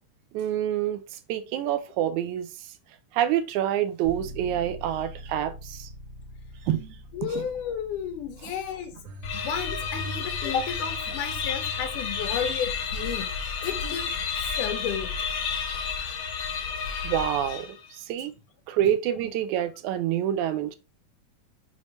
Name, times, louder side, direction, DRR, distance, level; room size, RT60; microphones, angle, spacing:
voice 1, 0.3-1.0 1.3-2.5 3.1-5.9 6.7-7.0 7.2-7.5 17.0-18.3 18.7-20.8, right 11 dB, 80° right, 1.9 m, -27 dB
sound 1, 4.0-13.8, equal, 40° right, 0.9 m, -46 dB
voice 2, 7.1-8.9 9.3-13.3 13.6-14.1 14.6-15.1, left 7 dB, 85° left, 2.8 m, -32 dB
sound 2, 9.0-17.1, right 3 dB, 55° right, 1.3 m, -45 dB
sound 3, 9.2-17.9, left 6 dB, 60° left, 1.8 m, -31 dB
6.3 x 5.3 x 3.4 m
omnidirectional pair, 3.6 m